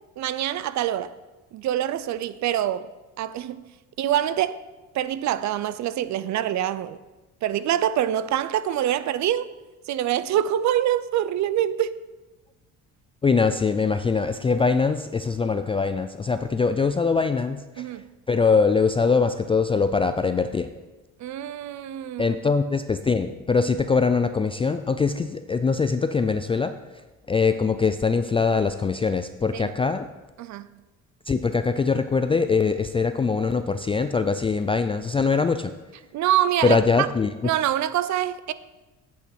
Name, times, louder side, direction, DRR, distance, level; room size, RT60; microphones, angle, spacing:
voice 1, 0.2-1.1 1.5-2.9 3.2-3.7 4.0-4.6 4.9-7.0 7.4-9.5 9.9-11.9 17.8-18.1 21.2-22.4 29.5-29.7 30.4-30.7 36.1-37.1 37.4-38.5, right 11 dB, 55° right, 0.5 m, -25 dB
voice 2, 13.2-17.9 18.3-20.7 22.2-26.7 27.3-30.1 31.3-35.7 36.6-37.3, left 4 dB, 15° left, 0.3 m, -22 dB
8.4 x 8.3 x 4.4 m
cardioid pair, 95°, 35 cm